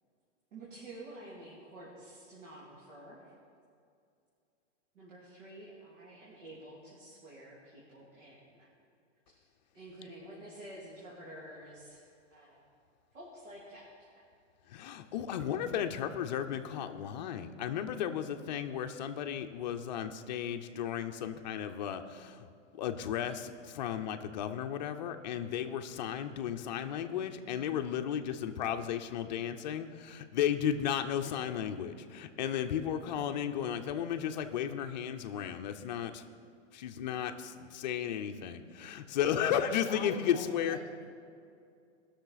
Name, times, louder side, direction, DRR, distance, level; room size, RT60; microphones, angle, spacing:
voice 1, 0.5-3.3 4.9-8.7 9.3-9.5 9.7-12.0 12.3-12.6 13.1-13.9 14.1-14.2, right 1 dB, 85° right, -6 dB, 2.7 m, -50 dB
voice 2, 14.7-22.5 22.7-36.2 36.7-37.3 37.6-40.8, left 9 dB, 35° left, 6 dB, 0.5 m, -34 dB
voice 3, 39.2-41.1, left 5 dB, 10° left, 2 dB, 0.8 m, -43 dB
18.0 x 6.5 x 4.0 m, 2.4 s
hypercardioid pair, 165°, 37 cm